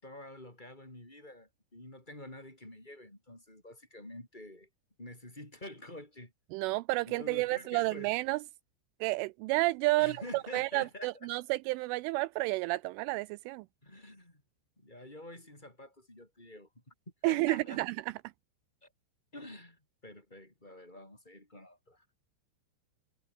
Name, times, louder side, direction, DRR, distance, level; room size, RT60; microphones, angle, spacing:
voice 1, 0.0-4.7 5.0-6.3 7.1-8.1 10.0-11.3 13.8-14.4 14.8-16.9 17.2-17.8 18.8-18.9 19.3-22.1, left 1 dB, 10° left, 5.3 m, -48 dB
voice 2, 6.5-8.4 9.0-13.6 17.2-17.9, right 21 dB, 85° right, 3.0 m, -31 dB
omnidirectional pair, 5.7 m